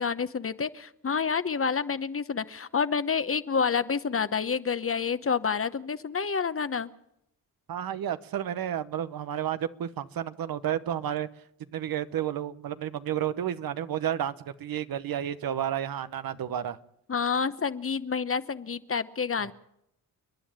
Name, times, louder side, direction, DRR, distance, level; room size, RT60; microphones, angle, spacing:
voice 1, 0.0-6.9 17.1-19.5, left 6 dB, 40° left, 1.0 m, -28 dB
voice 2, 7.7-11.3 11.7-16.8 19.4-19.5, right 10 dB, 75° right, 1.0 m, -31 dB
29.5 x 10.5 x 8.8 m
cardioid pair, 60°, 36 cm